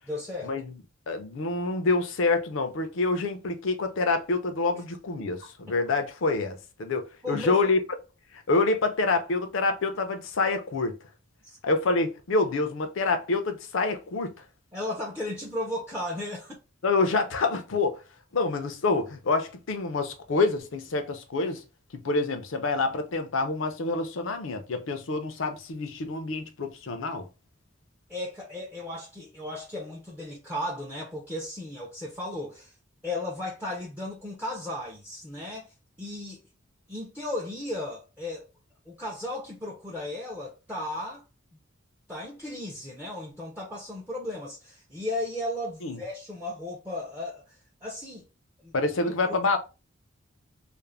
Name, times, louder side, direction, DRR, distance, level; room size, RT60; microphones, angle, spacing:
voice 1, 0.1-0.5 5.2-5.3 7.2-7.7 11.4-11.6 14.7-16.6 28.1-32.7 33.0-36.4 36.9-38.5 38.9-41.2 42.1-48.3 48.6-48.7 49.0-49.4, left 1 dB, 10° right, 0.4 m, -35 dB
voice 2, 1.1-7.8 8.3-11.0 11.6-14.5 16.8-18.0 18.3-21.6 21.9-27.3 45.8-46.0 48.7-49.6, left 3 dB, 70° left, 0.5 m, -27 dB
2.4 x 2.0 x 3.1 m
head